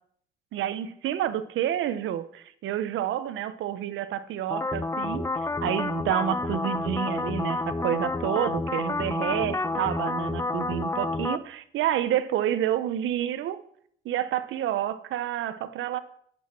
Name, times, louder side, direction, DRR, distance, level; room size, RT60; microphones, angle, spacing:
voice 1, 0.5-5.3 5.6-13.6 14.0-16.0, right 11 dB, 80° right, 13 dB, 1.0 m, -29 dB
sound 1, 4.5-11.4, left 2 dB, 15° left, 0.6 m, -29 dB
10.5 x 8.2 x 6.0 m, 0.63 s
cardioid pair, 90°, 20 cm